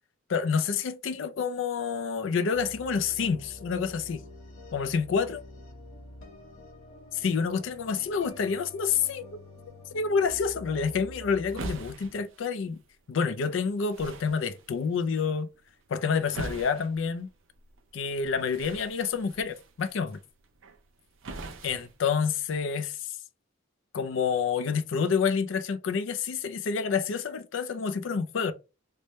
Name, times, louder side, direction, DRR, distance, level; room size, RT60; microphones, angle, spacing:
voice 1, 0.3-4.2 4.7-5.4 7.1-9.3 9.9-12.8 13.1-15.5 15.9-17.3 17.9-20.2 21.6-23.1 23.9-28.5, left 6 dB, 65° left, 0.4 m, -28 dB
sound 1, 2.5-11.9, left 1 dB, 90° left, 1.4 m, -47 dB
sound 2, 10.7-22.7, right 3 dB, 75° right, 0.6 m, -45 dB
3.3 x 2.1 x 4.1 m
head